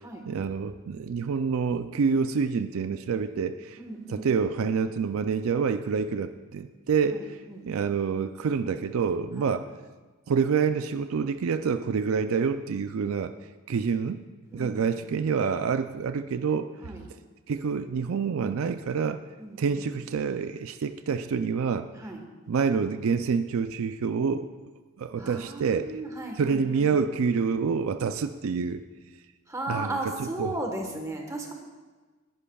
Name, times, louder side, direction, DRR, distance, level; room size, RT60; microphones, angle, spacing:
voice 1, 0.3-3.8 4.1-9.7 10.3-13.3 13.7-14.2 14.5-16.9 17.5-19.2 19.6-22.1 22.5-24.5 25.0-25.9 26.4-28.8 29.7-30.5, right 5 dB, 70° right, 10 dB, 0.4 m, -27 dB
voice 2, 3.8-4.3 7.1-7.7 9.4-9.5 14.5-14.8 16.8-17.0 19.4-19.6 22.0-22.2 25.2-26.9 29.5-31.5, right 1 dB, 15° right, 2 dB, 1.2 m, -35 dB
18.5 x 10.5 x 2.3 m, 1.3 s
head